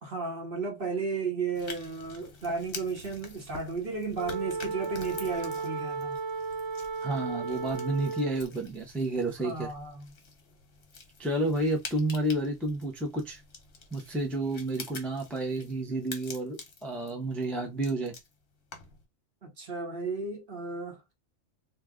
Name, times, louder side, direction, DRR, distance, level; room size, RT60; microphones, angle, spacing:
voice 1, 0.0-6.2 9.4-10.1 19.4-21.0, right 4 dB, 45° right, 1.1 m, -34 dB
sound 1, 1.5-19.1, left 4 dB, 50° left, 1.0 m, -47 dB
Wind instrument woodwind instrument, 4.1-8.5, right 4 dB, 70° right, 1.5 m, -34 dB
voice 2, 7.0-9.7 11.2-13.4 13.9-18.1, right 1 dB, ahead, 0.5 m, -30 dB
2.9 x 2.3 x 3.6 m
omnidirectional pair, 1.4 m